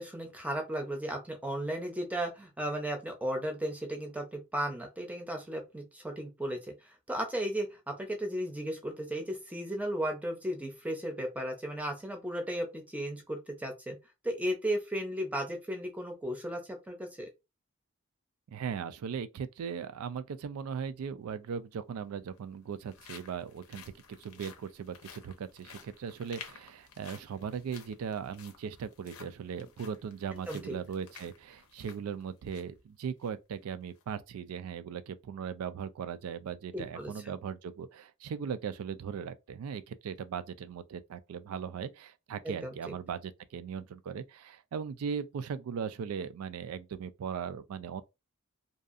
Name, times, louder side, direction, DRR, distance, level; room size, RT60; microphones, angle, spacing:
voice 1, 0.0-14.0 14.2-17.3 30.5-30.8 36.7-37.1 42.4-42.7, right 1 dB, 5° right, 0.5 m, -35 dB
voice 2, 18.5-48.0, right 7 dB, 85° right, 0.3 m, -38 dB
sound 1, 21.2-21.3 22.2-32.8 33.2-33.3 33.8-34.0, left 7 dB, 80° left, 0.6 m, -53 dB
2.6 x 2.3 x 2.5 m
head